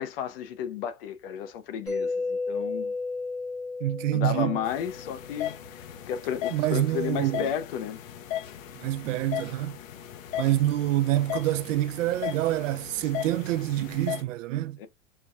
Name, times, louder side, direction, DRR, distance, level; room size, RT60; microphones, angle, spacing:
voice 1, 0.0-2.9 4.1-8.0 14.8-14.9, left 9 dB, 45° left, 0.7 m, -33 dB
Mallet percussion, 1.9-5.6, left 3 dB, ahead, 0.7 m, -33 dB
voice 2, 3.8-4.6 6.5-7.5 8.8-9.8 10.4-14.8, right 14 dB, 70° right, 0.5 m, -26 dB
sound 1, 4.6-14.2, left 11 dB, 80° left, 0.8 m, -37 dB
4.5 x 2.3 x 2.4 m
supercardioid pair, 170°, 39 cm